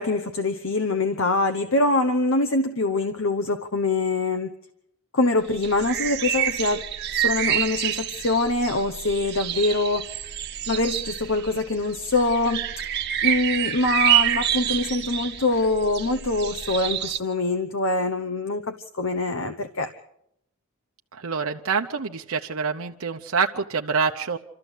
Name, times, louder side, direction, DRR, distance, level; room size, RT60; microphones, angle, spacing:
voice 1, 0.0-4.6 5.1-6.8 7.1-10.2 10.7-19.9, left 2 dB, 65° left, 1.0 m, -24 dB
sound 1, 5.6-17.2, right 11 dB, 50° right, 1.4 m, -27 dB
voice 2, 21.1-24.4, right 5 dB, 75° right, 0.9 m, -26 dB
27.0 x 14.0 x 8.2 m
head